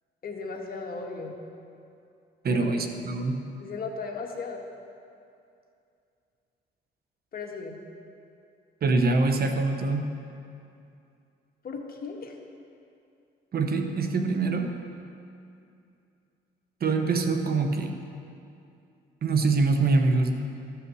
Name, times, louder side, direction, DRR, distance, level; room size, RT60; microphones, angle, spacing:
voice 1, 0.2-1.4 2.5-2.7 3.6-4.6 7.3-7.8 11.6-12.4, left 4 dB, 50° left, 1 dB, 1.5 m, -36 dB
voice 2, 2.4-3.4 8.8-10.1 13.5-14.7 16.8-18.0 19.2-20.3, right 3 dB, 50° right, 5 dB, 1.0 m, -24 dB
14.0 x 5.7 x 6.2 m, 2.5 s
cardioid pair, 90°, 20 cm